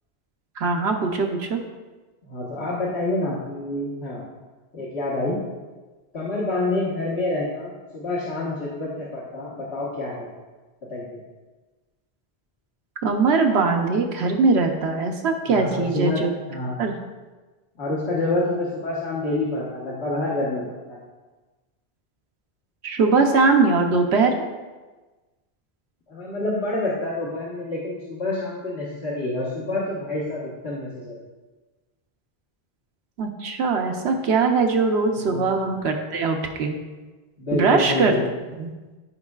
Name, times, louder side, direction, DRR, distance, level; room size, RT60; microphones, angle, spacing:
voice 1, 0.6-1.6 13.0-16.3 16.8-16.9 22.8-24.4 33.2-36.8 37.5-38.1 38.6-38.7, right 4 dB, 80° right, 4 dB, 1.1 m, -21 dB
voice 2, 2.2-4.2 4.7-5.4 6.1-10.3 10.9-11.2 15.5-16.7 17.8-20.6 20.9-21.0 26.1-31.1 35.1-35.8 37.4-38.3, left 2 dB, 80° left, -6 dB, 1.6 m, -27 dB
14.5 x 5.3 x 2.4 m, 1.2 s
omnidirectional pair, 1.1 m